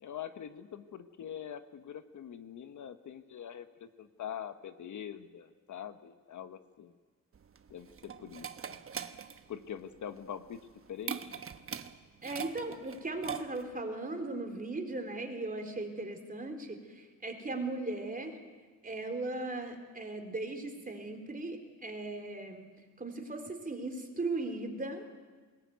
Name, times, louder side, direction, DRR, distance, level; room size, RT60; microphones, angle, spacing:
voice 1, 0.0-6.9 7.7-8.5 9.5-10.6 10.9-11.4, left 9 dB, 60° left, 10 dB, 1.2 m, -44 dB
sound 1, 7.3-13.8, right 7 dB, 40° right, 1.1 m, -42 dB
voice 2, 12.2-18.3 18.8-22.7 23.0-25.0, right 2 dB, 25° right, 4 dB, 3.8 m, -38 dB
21.0 x 19.0 x 9.4 m, 1.4 s
cardioid pair, 90°, 33 cm